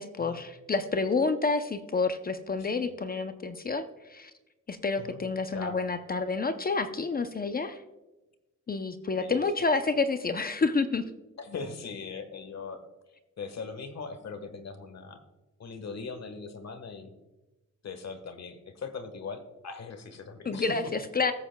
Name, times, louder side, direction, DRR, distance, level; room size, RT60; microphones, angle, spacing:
voice 1, 0.0-4.3 4.7-7.8 8.7-11.1 20.4-21.3, left 4 dB, 30° left, 9 dB, 0.6 m, -29 dB
voice 2, 2.6-3.0 5.0-5.2 5.5-5.8 9.2-9.4 11.4-12.8 13.4-15.2 15.6-17.1 17.8-20.7, left 4 dB, 55° left, 9 dB, 1.4 m, -40 dB
19.5 x 8.0 x 2.2 m, 1.1 s
cardioid pair, 105°, 31 cm